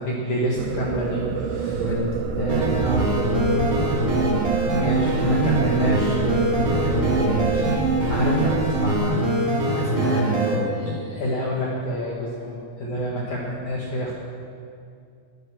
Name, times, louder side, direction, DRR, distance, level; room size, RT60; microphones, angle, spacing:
voice 1, 0.0-1.8 2.4-3.8 4.7-6.4 8.1-9.2 10.8-14.1, equal, 60° left, -4 dB, 2.1 m, -27 dB
sound 1, 0.6-8.2, right 6 dB, 85° right, 3.2 m, -28 dB
voice 2, 1.6-2.1 6.6-7.9 9.7-10.8, equal, ahead, -4 dB, 0.9 m, -29 dB
sound 2, 1.9-9.0, left 1 dB, 90° left, 1.6 m, -35 dB
sound 3, 2.5-10.6, right 2 dB, 50° right, 2.6 m, -23 dB
21.0 x 9.0 x 6.2 m, 2.3 s
omnidirectional pair, 5.8 m